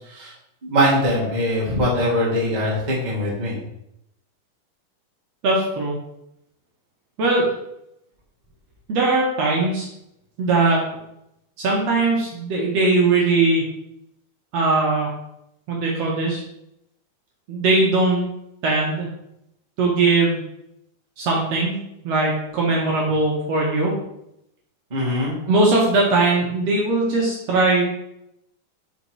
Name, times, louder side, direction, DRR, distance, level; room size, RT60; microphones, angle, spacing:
voice 1, 0.6-3.6 24.9-25.3, equal, 25° right, -5 dB, 0.9 m, -22 dB
voice 2, 5.4-5.9 7.2-7.4 8.9-9.9 10.4-10.8 11.6-13.6 14.5-15.1 15.7-16.4 17.5-18.2 18.6-19.1 19.8-20.4 21.2-21.7 22.0-23.9 25.5-27.9, right 3 dB, 65° right, -3 dB, 1.7 m, -20 dB
5.1 x 4.1 x 4.6 m, 0.81 s
omnidirectional pair, 3.7 m